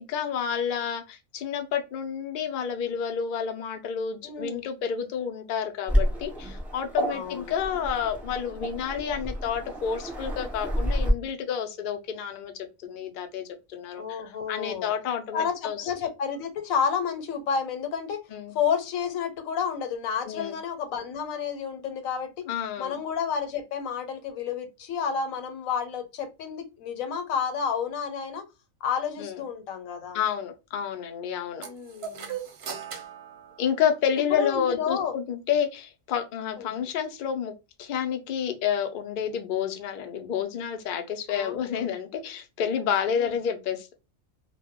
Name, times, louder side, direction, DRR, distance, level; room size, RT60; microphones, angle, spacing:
voice 1, 0.0-13.4 13.7-15.9 18.3-18.6 20.3-20.6 22.5-23.0 29.2-29.4 30.1-31.7 33.6-37.5 37.8-43.9, left 8 dB, 65° left, 0.5 m, -30 dB
voice 2, 4.2-4.7 7.1-7.5 14.0-14.9 15.3-18.2 18.5-22.5 22.8-28.4 28.8-30.2 31.6-32.3 34.3-35.1 36.6-36.7 41.3-41.9 43.2-43.3, left 7 dB, 85° left, 1.0 m, -30 dB
Waves surf, 5.9-11.1, equal, ahead, 0.7 m, -30 dB
sound 1, 31.6-34.3, right 7 dB, 60° right, 0.7 m, -39 dB
2.1 x 2.1 x 3.4 m
omnidirectional pair, 1.4 m